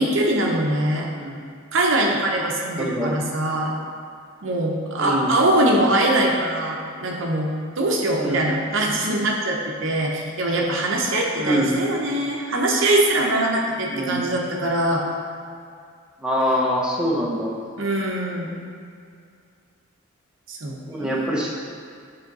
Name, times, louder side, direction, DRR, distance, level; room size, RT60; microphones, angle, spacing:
voice 1, 0.0-1.1 1.7-3.7 4.4-15.0 17.8-18.6 20.5-21.3, right 1 dB, 65° right, -1 dB, 0.8 m, -22 dB
voice 2, 2.7-3.1 5.0-5.4 8.2-8.5 11.4-11.8 13.9-14.4 16.2-17.5 20.9-21.5, equal, 5° right, -5 dB, 0.8 m, -24 dB
7.0 x 3.5 x 4.0 m, 2.3 s
head